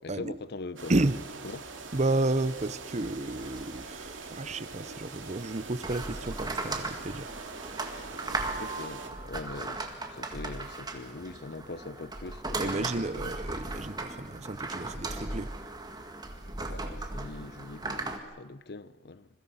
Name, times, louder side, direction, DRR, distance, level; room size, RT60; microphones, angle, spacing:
voice 1, 0.0-0.9 1.4-1.6 8.6-13.3 16.5-19.3, left 3 dB, 60° left, 0.7 m, -42 dB
sound 1, 0.8-18.2, right 2 dB, 20° right, 2.1 m, -38 dB
sound 2, 0.8-9.1, right 4 dB, 90° right, 2.6 m, -43 dB
voice 2, 1.9-7.3 12.6-15.5, right 2 dB, 40° right, 0.8 m, -31 dB
27.0 x 22.5 x 5.6 m
head